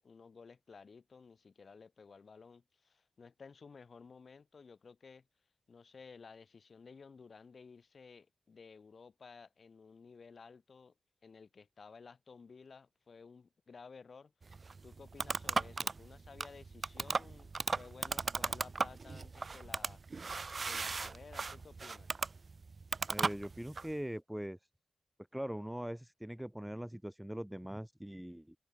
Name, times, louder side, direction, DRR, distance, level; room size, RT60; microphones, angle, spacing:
voice 1, 0.0-5.3 5.7-10.9 11.2-14.3 14.8-22.1, left 5 dB, 50° left, 5.1 m, -55 dB
sound 1, 14.4-23.9, right 4 dB, 40° right, 0.9 m, -37 dB
voice 2, 23.1-24.6 25.3-28.5, equal, 5° right, 0.7 m, -41 dB
wide cardioid pair, 115°, 0 cm